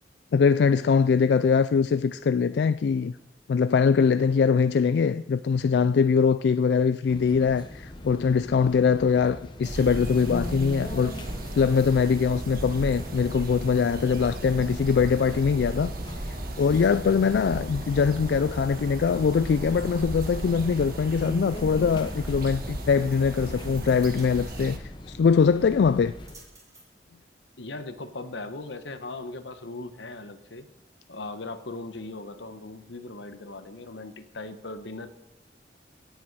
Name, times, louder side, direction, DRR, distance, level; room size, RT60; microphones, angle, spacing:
voice 1, 0.3-3.1 3.5-11.1 11.5-15.9 16.3-26.1, left 6 dB, 70° left, 0.3 m, -22 dB
sound 1, 7.1-26.4, left 1 dB, 25° left, 1.0 m, -41 dB
sound 2, 9.6-24.8, right 1 dB, 50° right, 1.5 m, -35 dB
sound 3, 20.2-32.5, right 2 dB, 20° right, 3.7 m, -59 dB
voice 2, 27.6-30.7 31.1-35.1, left 2 dB, 90° left, 1.1 m, -38 dB
18.0 x 8.9 x 4.7 m
head